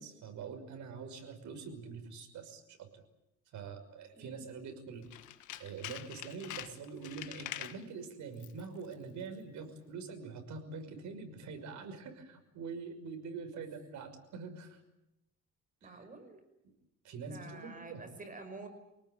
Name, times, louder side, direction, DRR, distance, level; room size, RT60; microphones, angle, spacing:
voice 1, 0.0-3.0 3.5-5.1 5.6-14.8 15.8-16.1 17.0-18.1, right 5 dB, 75° right, 7 dB, 5.9 m, -45 dB
Tools, 5.0-7.8 8.3-8.7 8.9-9.0, left 13 dB, 90° left, 1.6 m, -45 dB
voice 2, 15.8-16.4 17.2-18.7, right 3 dB, 30° right, 8 dB, 5.5 m, -48 dB
27.5 x 19.0 x 9.3 m, 0.88 s
cardioid pair, 140°, 29 cm